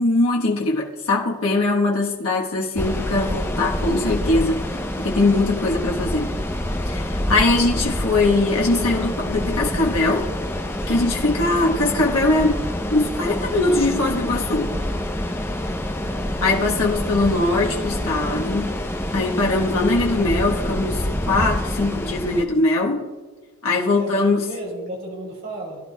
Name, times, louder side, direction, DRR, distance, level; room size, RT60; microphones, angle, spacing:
voice 1, 0.0-4.7 5.0-6.3 6.9-10.3 10.9-12.6 12.9-14.7 16.4-18.7 19.1-23.0 23.6-24.4, left 2 dB, 85° left, -2 dB, 1.2 m, -21 dB
sound 1, 2.8-22.4, left 1 dB, 10° left, 0.5 m, -27 dB
voice 2, 15.9-16.5 23.8-25.8, right 1 dB, 45° right, -2 dB, 3.5 m, -34 dB
18.0 x 11.0 x 2.2 m, 1.3 s
head